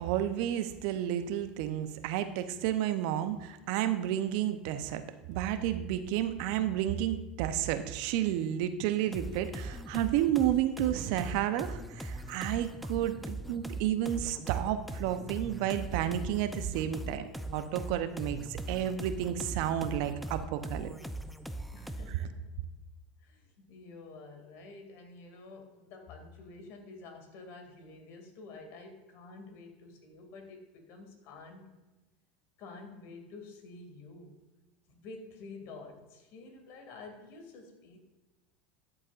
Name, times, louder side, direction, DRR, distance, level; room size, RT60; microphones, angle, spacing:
voice 1, 0.0-5.0 5.3-20.9 22.1-22.2, right 11 dB, 60° right, 10 dB, 0.7 m, -31 dB
sound 1, 9.1-22.3, right 1 dB, ahead, 0.6 m, -40 dB
voice 2, 21.7-22.6 23.2-31.8 32.6-34.4 34.9-38.0, left 3 dB, 55° left, 4 dB, 2.4 m, -49 dB
12.5 x 7.5 x 2.5 m, 1.1 s
hypercardioid pair, 85°, 5 cm